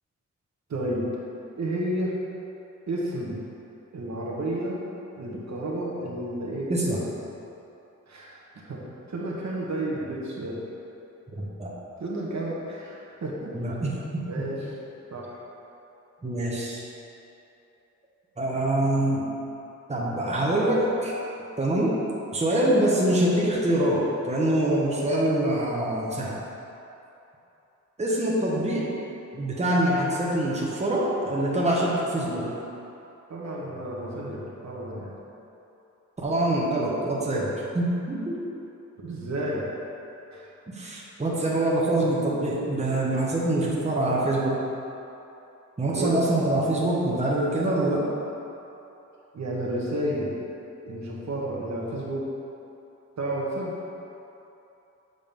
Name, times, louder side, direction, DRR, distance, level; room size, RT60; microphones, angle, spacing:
voice 1, 0.7-1.1 1.6-2.1 2.9-3.4 3.9-4.8 5.1-6.7 8.1-8.8 9.1-10.6 12.0-13.5 14.3-14.6 15.1-15.4 33.3-35.1 39.0-39.6 40.3-40.5 45.9-46.1 49.3-50.3 50.9-52.3 53.2-53.7, right 1 dB, 65° right, -5 dB, 1.3 m, -31 dB
voice 2, 6.7-7.0 11.4-11.7 13.5-14.5 16.2-16.8 18.4-19.2 19.9-21.1 21.6-22.0 22.3-26.4 28.0-28.9 29.3-32.5 36.2-38.4 40.7-44.6 45.8-48.1, right 1 dB, 20° right, -5 dB, 1.2 m, -25 dB
7.2 x 4.0 x 5.2 m, 2.9 s
wide cardioid pair, 95°, 30 cm